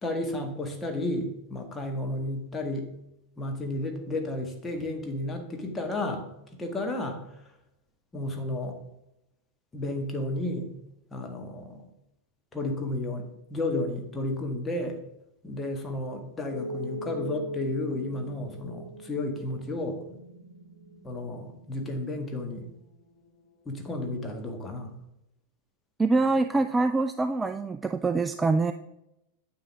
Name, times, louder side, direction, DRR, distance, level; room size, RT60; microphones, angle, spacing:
voice 1, 0.0-2.9 3.4-6.2 6.5-7.2 8.1-8.8 9.7-10.7 11.1-11.8 12.5-15.0 15.4-20.0 21.0-22.7 23.6-24.9, left 1 dB, 15° left, 3 dB, 1.7 m, -32 dB
sound 1, 16.5-23.4, equal, 60° left, 2.8 m, -41 dB
voice 2, 26.0-28.7, right 3 dB, 10° right, 9 dB, 0.4 m, -25 dB
9.5 x 6.8 x 3.6 m, 0.86 s
figure-of-eight pair, 90°, 0 cm